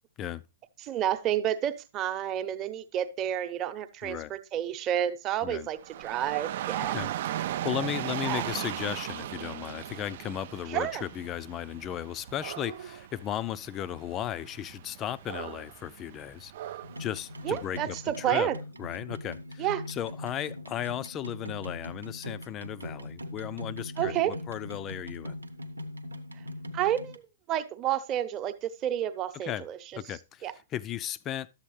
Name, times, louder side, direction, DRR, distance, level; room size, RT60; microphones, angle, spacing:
voice 1, 0.8-7.0 8.2-8.5 10.7-11.1 17.4-18.6 19.6-19.8 24.0-24.4 26.7-27.2 27.5-29.8 30.4-30.5, right 11 dB, 30° right, 0.9 m, -30 dB
Dog / Rain, 5.8-18.0, right 12 dB, 55° right, 0.4 m, -38 dB
voice 2, 6.9-18.5 18.8-25.4 29.5-29.7 30.0-31.5, left 11 dB, 25° left, 0.4 m, -36 dB
sound 1, 16.8-27.2, left 1 dB, 90° right, 1.0 m, -41 dB
12.0 x 7.3 x 3.2 m
figure-of-eight pair, 110°, 0 cm